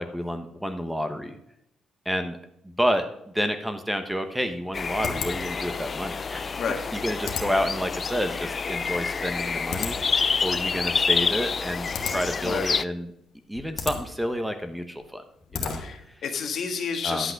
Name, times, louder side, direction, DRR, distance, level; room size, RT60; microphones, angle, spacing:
voice 1, 0.0-1.4 2.0-2.4 2.6-6.6 6.9-13.1 13.5-15.2 15.5-15.8 17.0-17.3, equal, 5° right, 8 dB, 1.0 m, -29 dB
sound 1, 4.0-16.2, left 6 dB, 80° left, 1.6 m, -38 dB
sound 2, 4.7-12.8, left 5 dB, 40° left, 0.4 m, -28 dB
voice 2, 15.7-17.3, left 6 dB, 60° left, 5 dB, 1.5 m, -30 dB
10.5 x 5.9 x 5.9 m, 0.78 s
cardioid pair, 90°, 0 cm